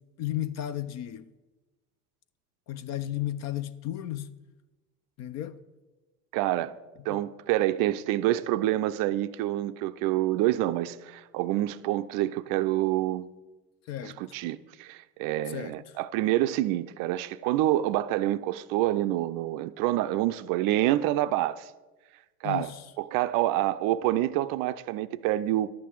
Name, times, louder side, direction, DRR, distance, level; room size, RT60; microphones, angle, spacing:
voice 1, 0.2-1.3 2.7-4.3 5.2-5.6 7.1-7.2 13.9-14.2 15.5-15.7 22.4-22.8, left 12 dB, 35° left, 0.5 m, -33 dB
voice 2, 6.3-6.7 7.1-13.3 14.0-21.7 22.4-22.7 23.0-25.7, right 14 dB, 45° right, 0.5 m, -27 dB
11.5 x 8.3 x 4.6 m
hypercardioid pair, 85°, 46 cm